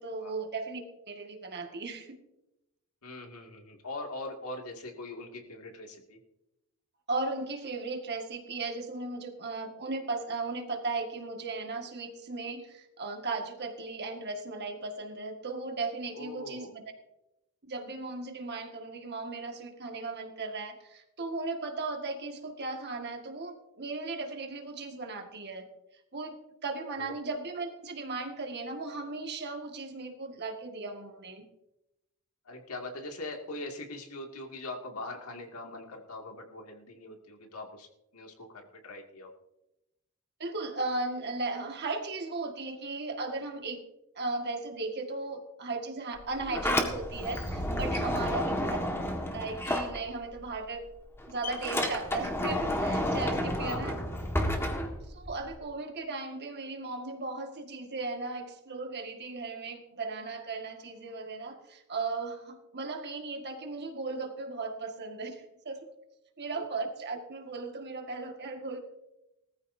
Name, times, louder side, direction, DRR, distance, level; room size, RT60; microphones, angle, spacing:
voice 1, 0.0-2.2 7.1-16.7 17.7-25.7 26.1-26.4 26.6-31.5 40.4-43.8 44.2-48.8 49.3-50.8 51.3-53.9 55.1-65.9 66.4-68.8, right 3 dB, 50° right, 4 dB, 1.9 m, -36 dB
voice 2, 3.0-6.2 16.1-16.7 27.0-27.1 32.5-37.9 38.1-39.3 48.4-48.6 53.6-54.1 66.5-66.6, left 2 dB, 80° left, 2 dB, 2.4 m, -41 dB
Sliding door, 46.2-50.5 50.8-55.5, left 1 dB, 10° left, 1.7 m, -31 dB
19.5 x 14.0 x 2.8 m, 0.91 s
head